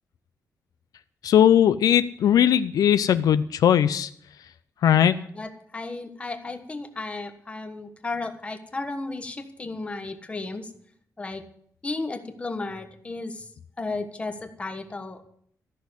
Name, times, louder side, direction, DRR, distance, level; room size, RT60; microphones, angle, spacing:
voice 1, 1.2-4.1 4.8-5.1, left 10 dB, 75° left, 12 dB, 0.5 m, -19 dB
voice 2, 4.8-10.7 11.2-11.4 11.8-13.5 13.8-15.2, left 3 dB, 20° left, 7 dB, 1.2 m, -34 dB
14.0 x 6.3 x 9.6 m, 0.64 s
wide cardioid pair, 175°, 6 cm